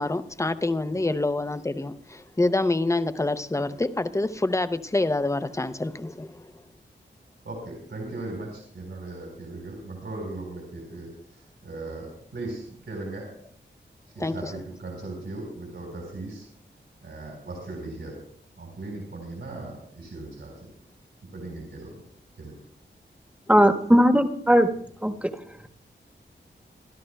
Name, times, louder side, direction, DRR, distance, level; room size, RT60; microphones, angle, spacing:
voice 1, 0.0-6.5 14.2-14.5, left 2 dB, 15° left, 0.6 m, -26 dB
voice 2, 7.4-13.3 14.1-16.5 17.0-18.1 18.6-20.7 21.3-21.9 22.4-22.5, right 2 dB, 75° right, 4.1 m, -38 dB
voice 3, 23.5-24.7 25.0-25.3, equal, 5° right, 1.2 m, -18 dB
26.0 x 12.5 x 2.2 m
wide cardioid pair, 95°, 19 cm